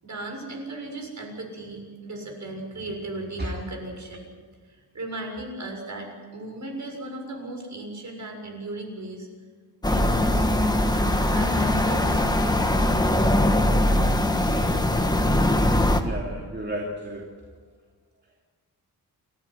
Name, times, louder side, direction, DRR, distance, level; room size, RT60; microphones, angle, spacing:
voice 1, 0.0-4.3 4.7-9.3 9.9-10.5 10.9-13.0, right 2 dB, 45° right, 2 dB, 6.8 m, -36 dB
sound 1, 9.8-16.0, left 1 dB, 10° left, 1.5 m, -21 dB
voice 2, 16.0-17.3, right 1 dB, 25° right, -1 dB, 2.8 m, -32 dB
28.5 x 15.0 x 9.9 m, 1.5 s
wide cardioid pair, 165°, 38 cm